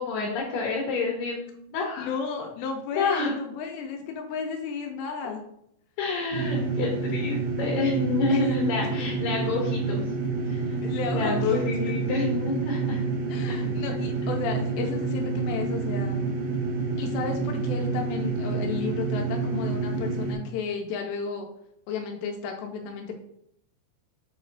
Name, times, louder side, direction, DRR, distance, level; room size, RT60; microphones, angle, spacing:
voice 1, 0.0-2.1 3.0-3.3 5.2-5.4 6.0-10.1 10.5-10.8 11.1-13.0 13.5-13.6, left 3 dB, 70° left, -2 dB, 2.3 m, -28 dB
voice 2, 2.0-5.4 8.3-8.4 8.8-9.1 10.8-11.5 13.3-16.2 17.0-21.5 21.9-23.1, left 6 dB, 85° left, 3 dB, 2.8 m, -33 dB
sound 1, 6.3-20.4, right 4 dB, 70° right, 2.3 m, -28 dB
7.7 x 3.1 x 3.9 m, 0.73 s
omnidirectional pair, 4.9 m